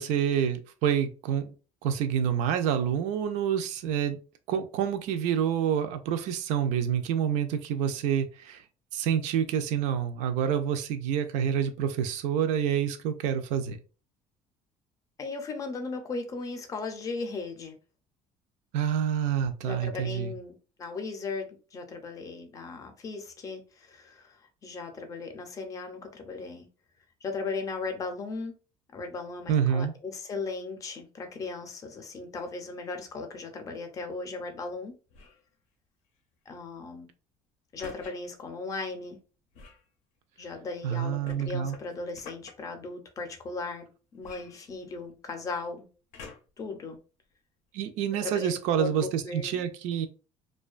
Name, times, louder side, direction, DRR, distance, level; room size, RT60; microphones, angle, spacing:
voice 1, 0.0-1.5 1.8-4.2 4.5-8.6 8.9-13.8 18.7-20.3 29.5-29.9 40.8-41.7 47.7-50.1, right 8 dB, 75° right, 0.4 m, -27 dB
voice 2, 15.2-17.7 19.6-26.7 27.2-28.5 28.9-34.9 36.5-37.1 37.7-39.2 40.4-43.9 44.1-45.8 46.6-47.0 48.2-49.7, left 3 dB, 25° left, 0.5 m, -37 dB
sound 1, 35.1-35.5 37.8-38.1 39.5-39.9 41.2-42.5 44.2-45.2 46.1-46.7 47.3-47.4, left 5 dB, 75° left, 0.5 m, -48 dB
2.5 x 2.2 x 2.3 m
cardioid pair, 155°, 12 cm